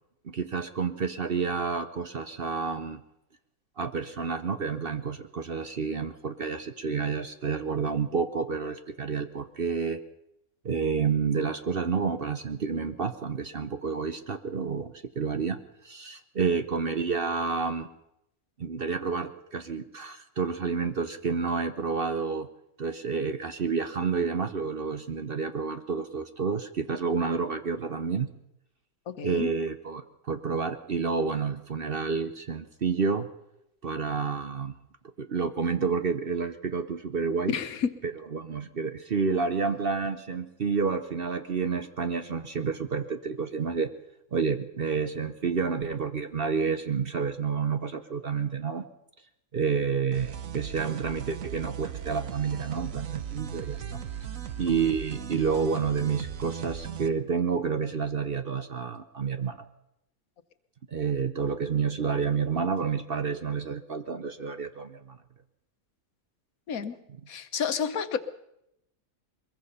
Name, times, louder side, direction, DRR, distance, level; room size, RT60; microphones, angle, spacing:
voice 1, 0.2-3.0 3.8-10.0 10.6-15.6 15.8-17.9 18.6-22.5 22.8-28.3 29.2-33.3 33.8-34.7 35.2-37.5 38.3-43.9 44.3-48.8 49.5-54.0 54.6-59.7 60.9-65.2, right 5 dB, 45° right, 9 dB, 1.0 m, -29 dB
voice 2, 29.1-29.5 37.5-37.9 66.7-67.0 67.3-68.2, left 7 dB, 80° left, 10 dB, 1.6 m, -30 dB
sound 1, 50.1-57.1, right 9 dB, 70° right, 1.4 m, -37 dB
22.5 x 21.5 x 5.6 m, 0.83 s
omnidirectional pair, 1.5 m